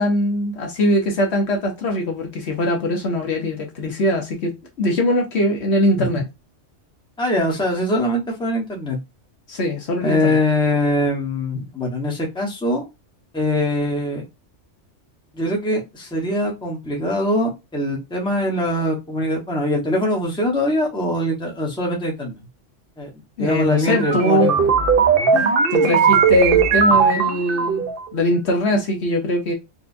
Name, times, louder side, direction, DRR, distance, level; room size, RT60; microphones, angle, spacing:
voice 1, 0.0-6.2 9.5-10.4 23.4-24.5 25.3-29.5, left 1 dB, 65° left, 1.2 m, -22 dB
voice 2, 7.2-9.0 10.0-12.9 13.3-14.2 15.3-22.4 23.0-23.1 23.4-24.6, left 1 dB, 5° left, 0.9 m, -22 dB
sound 1, 23.8-28.0, right 5 dB, 55° right, 0.8 m, -17 dB
4.3 x 2.3 x 2.5 m
omnidirectional pair, 1.3 m